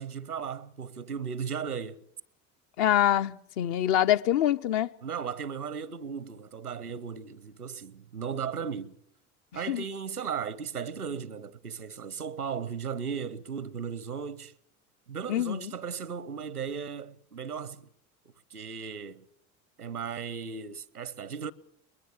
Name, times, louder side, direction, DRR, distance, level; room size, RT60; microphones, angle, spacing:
voice 1, 0.0-2.0 5.0-9.0 9.5-14.5 15.1-17.9 18.5-19.3 19.8-21.5, right 6 dB, 85° right, 0.8 m, -36 dB
voice 2, 2.8-4.9 9.7-9.8 15.3-15.7, left 11 dB, 50° left, 0.8 m, -25 dB
22.0 x 20.5 x 6.7 m
figure-of-eight pair, 65°, 44 cm